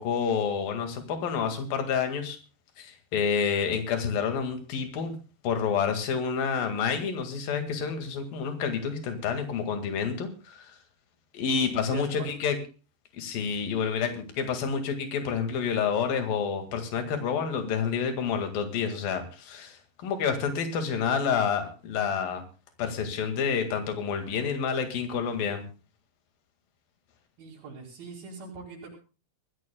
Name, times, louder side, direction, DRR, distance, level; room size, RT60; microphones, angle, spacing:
voice 1, 0.0-2.4 2.8-5.2 5.4-10.8 11.3-12.6 13.1-22.4 22.8-25.6, left 6 dB, 65° left, 6 dB, 3.7 m, -29 dB
voice 2, 11.5-12.3 27.4-29.0, right 4 dB, 70° right, -3 dB, 4.0 m, -42 dB
24.0 x 14.0 x 2.3 m, 0.34 s
omnidirectional pair, 4.5 m